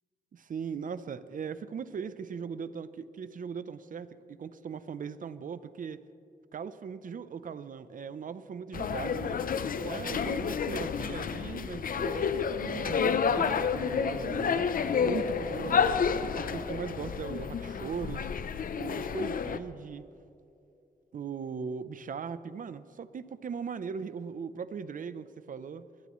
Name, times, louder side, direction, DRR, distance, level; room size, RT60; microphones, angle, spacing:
voice 1, 0.3-6.0 6.5-9.5 9.8-16.0 16.3-18.3 18.7-20.1 21.1-25.9, right 6 dB, 55° right, 13 dB, 0.7 m, -39 dB
sound 1, 8.7-19.6, left 6 dB, 60° left, 0.7 m, -30 dB
23.5 x 18.0 x 3.1 m, 2.6 s
wide cardioid pair, 135°, 16 cm